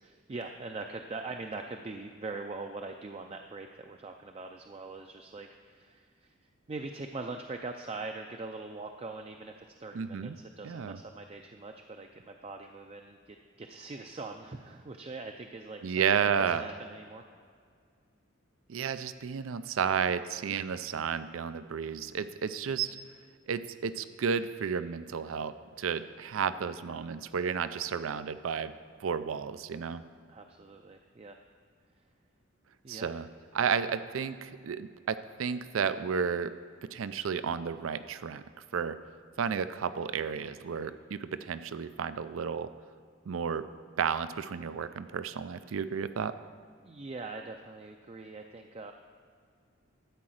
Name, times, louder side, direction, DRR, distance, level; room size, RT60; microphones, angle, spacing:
voice 1, 0.0-6.3 6.7-16.0 16.4-17.2 30.3-31.4 32.8-33.1 46.8-48.9, right 3 dB, 30° right, 4 dB, 0.4 m, -42 dB
voice 2, 9.9-10.4 10.6-11.0 15.8-16.6 18.7-23.0 23.5-28.7 29.0-30.0 32.9-33.3 33.5-36.5 36.9-38.4 38.7-39.0 39.4-42.7 43.3-43.6 44.0-46.3, right 6 dB, 85° right, 13 dB, 0.4 m, -32 dB
12.5 x 4.8 x 7.8 m, 2.1 s
head